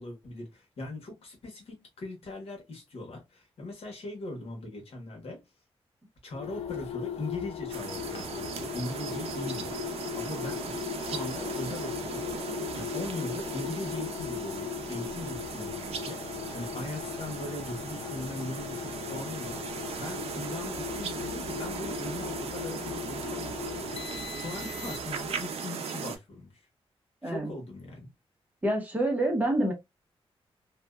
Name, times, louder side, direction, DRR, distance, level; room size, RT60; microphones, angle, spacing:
voice 1, 0.0-5.4 6.2-9.8 10.1-12.3 12.7-19.6 19.9-24.0 24.3-26.6 27.2-28.1, left 2 dB, 70° left, 1.1 m, -40 dB
sound 1, 6.3-25.3, left 9 dB, 90° left, 0.4 m, -38 dB
sound 2, 7.7-26.2, right 6 dB, 80° right, 0.4 m, -38 dB
voice 2, 28.6-29.7, right 1 dB, 15° right, 0.7 m, -27 dB
2.7 x 2.2 x 2.3 m
wide cardioid pair, 175°, 10 cm